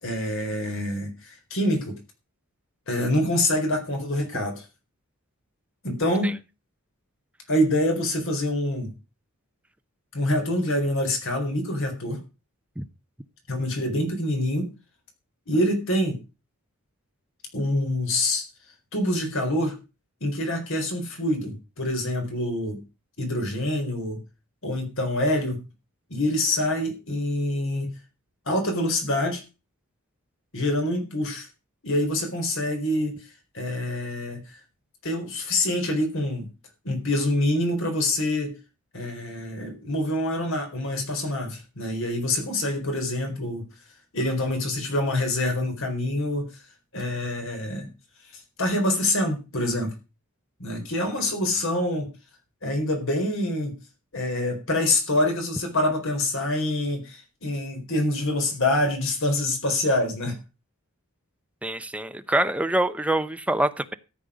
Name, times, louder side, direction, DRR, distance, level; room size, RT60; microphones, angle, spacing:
voice 1, 0.0-1.9 2.9-4.6 5.8-6.4 7.5-9.0 10.1-12.2 13.5-14.7 15.5-16.2 17.5-18.4 18.9-19.8 20.2-22.8 23.2-24.2 24.6-25.6 26.1-27.9 28.5-29.4 30.5-31.5 31.8-33.3 33.5-34.6 35.0-36.5 36.8-38.5 38.9-43.7 44.1-46.5 46.9-47.9 48.3-50.0 50.6-52.1 52.6-53.7 54.1-60.4, left 1 dB, 65° left, 4 dB, 4.3 m, -26 dB
voice 2, 61.6-63.9, right 1 dB, 5° right, 10 dB, 0.7 m, -25 dB
14.0 x 8.5 x 5.1 m, 0.31 s
head